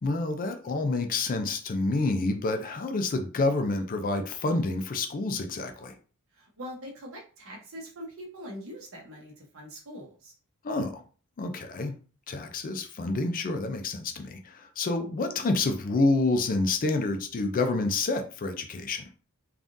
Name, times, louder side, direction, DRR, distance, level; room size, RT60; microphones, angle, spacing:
voice 1, 0.0-5.9 10.6-11.0 11.4-11.9 12.3-19.0, left 3 dB, 40° left, 6 dB, 0.4 m, -28 dB
voice 2, 6.3-10.3, equal, 65° right, 0 dB, 1.1 m, -43 dB
3.5 x 2.4 x 2.6 m, 0.38 s
head